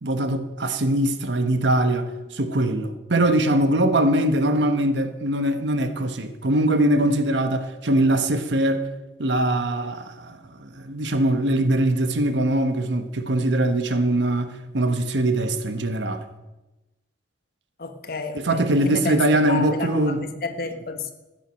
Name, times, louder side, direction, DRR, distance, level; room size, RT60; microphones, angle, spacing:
voice 1, 0.0-8.9 9.2-16.2 18.3-20.2, right 1 dB, 75° right, 1.2 m, -22 dB
voice 2, 17.8-21.1, left 4 dB, 55° left, 1.3 m, -31 dB
14.5 x 9.2 x 6.4 m
head